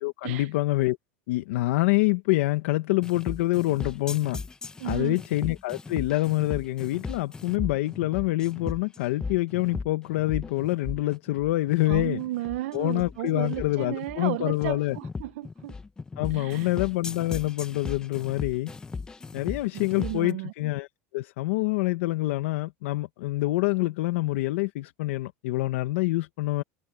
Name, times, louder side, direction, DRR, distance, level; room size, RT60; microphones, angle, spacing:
voice 1, 0.0-1.0 1.3-4.4 4.8-12.2 12.7-15.0 16.2-18.7 19.3-20.9 21.1-26.6, left 18 dB, 80° left, 1.2 m, -26 dB
sound 1, 3.0-20.3, left 4 dB, 10° left, 0.9 m, -37 dB
voice 2, 4.8-5.2 11.9-15.7 16.3-16.7 19.7-20.5, right 17 dB, 75° right, 0.7 m, -34 dB
supercardioid pair, 165°, 7 cm